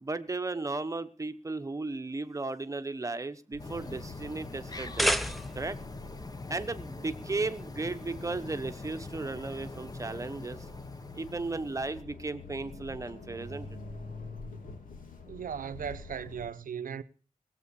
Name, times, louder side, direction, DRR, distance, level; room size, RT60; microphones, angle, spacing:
voice 1, 0.0-5.1 5.5-5.8 6.5-10.7 11.1-13.7, right 3 dB, 25° right, 1.0 m, -35 dB
sound 1, 3.5-16.5, left 3 dB, 80° left, 2.5 m, -47 dB
sound 2, 3.6-12.0, left 3 dB, 25° left, 1.1 m, -43 dB
sound 3, 4.7-5.8, equal, ahead, 0.7 m, -29 dB
voice 2, 15.3-17.0, right 7 dB, 85° right, 0.8 m, -37 dB
18.5 x 7.7 x 6.9 m
wide cardioid pair, 125°, 14 cm